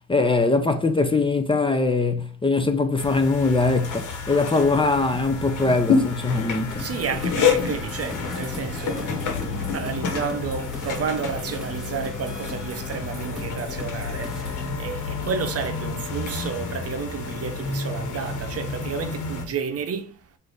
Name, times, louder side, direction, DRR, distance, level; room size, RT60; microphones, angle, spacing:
voice 1, 0.1-6.8, left 3 dB, 15° left, 0.5 m, -22 dB
sound 1, 3.0-19.5, left 5 dB, 80° left, 1.2 m, -29 dB
sound 2, 6.7-14.7, left 3 dB, ahead, 1.8 m, -38 dB
voice 2, 6.8-20.1, right 6 dB, 50° right, 0.8 m, -31 dB
4.1 x 2.7 x 4.8 m
cardioid pair, 90°, 30 cm